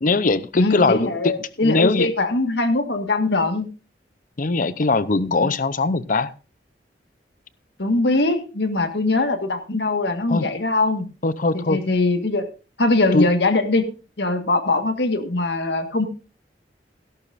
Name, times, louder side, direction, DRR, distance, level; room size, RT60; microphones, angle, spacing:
voice 1, 0.0-2.1 4.4-6.3 10.3-10.5 11.2-11.8 13.1-13.3, left 3 dB, 50° left, 0.7 m, -21 dB
voice 2, 0.5-3.7 5.4-5.5 7.8-11.0 11.5-12.5 12.8-13.8 14.2-16.1, left 2 dB, 75° left, 1.6 m, -21 dB
16.5 x 11.5 x 2.6 m
head